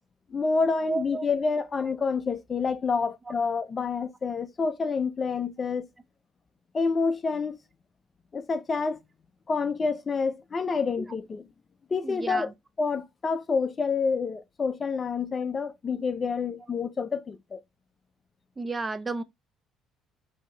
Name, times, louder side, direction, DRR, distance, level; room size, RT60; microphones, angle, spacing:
voice 1, 0.3-5.9 6.7-7.6 8.3-9.0 9.5-11.4 11.9-12.5 12.8-17.6, left 4 dB, 30° left, 0.5 m, -28 dB
voice 2, 0.8-1.3 3.3-3.4 11.0-11.1 12.0-12.5 18.6-19.2, right 3 dB, 20° right, 0.7 m, -32 dB
4.4 x 2.8 x 4.3 m
cardioid pair, 105°, 0 cm